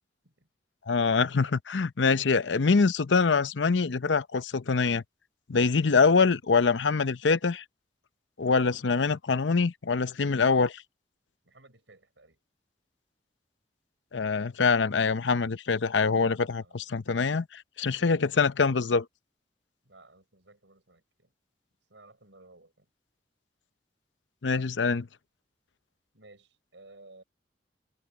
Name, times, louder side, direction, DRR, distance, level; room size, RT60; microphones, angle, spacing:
voice 1, 0.9-5.0 5.5-7.6 8.4-10.8 14.1-19.0 24.4-25.1, left 4 dB, 85° left, 0.7 m, -24 dB
voice 2, 11.4-12.4 16.6-16.8 18.0-18.2 19.8-21.3 21.9-22.9 26.1-27.2, right 2 dB, 85° right, 6.3 m, -56 dB
head